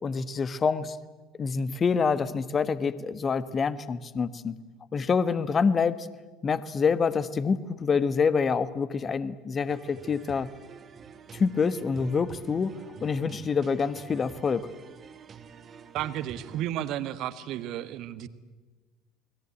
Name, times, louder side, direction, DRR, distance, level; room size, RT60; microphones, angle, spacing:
voice 1, 0.0-1.0 1.4-4.6 4.9-6.1 6.4-10.5 11.3-12.7 13.0-14.7, left 5 dB, 30° left, 15 dB, 1.3 m, -26 dB
sound 1, 9.7-16.6, right 6 dB, 35° right, 2.0 m, -47 dB
voice 2, 15.9-18.3, right 12 dB, 50° right, 14 dB, 1.4 m, -33 dB
28.5 x 21.0 x 8.5 m, 1.3 s
figure-of-eight pair, 65°, 0 cm